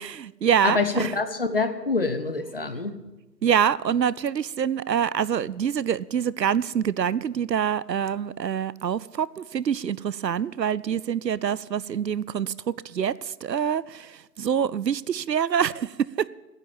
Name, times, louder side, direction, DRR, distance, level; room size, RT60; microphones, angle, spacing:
voice 1, 0.0-1.1 3.4-12.5 12.8-16.3, right 8 dB, 80° right, 20 dB, 0.6 m, -25 dB
voice 2, 0.6-3.0, left 3 dB, 35° left, 9 dB, 0.9 m, -26 dB
10.5 x 9.9 x 8.9 m, 1.1 s
figure-of-eight pair, 150°, 50 cm